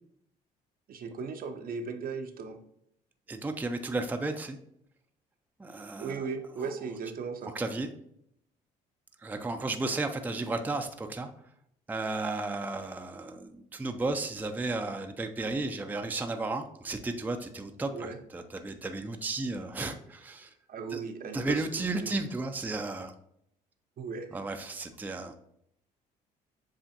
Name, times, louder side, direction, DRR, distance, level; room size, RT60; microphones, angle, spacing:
voice 1, 0.9-2.6 6.0-7.6 17.9-18.2 20.7-21.6 22.0-22.1 24.0-24.3, right 5 dB, 50° right, 6 dB, 0.6 m, -37 dB
voice 2, 3.3-4.6 5.6-6.3 6.6-6.7 7.4-7.9 9.2-11.3 11.9-20.5 20.9-21.0 21.3-23.1 24.3-25.3, right 2 dB, 10° right, 6 dB, 0.5 m, -33 dB
7.2 x 2.4 x 2.7 m, 0.73 s
supercardioid pair, 65°, 19 cm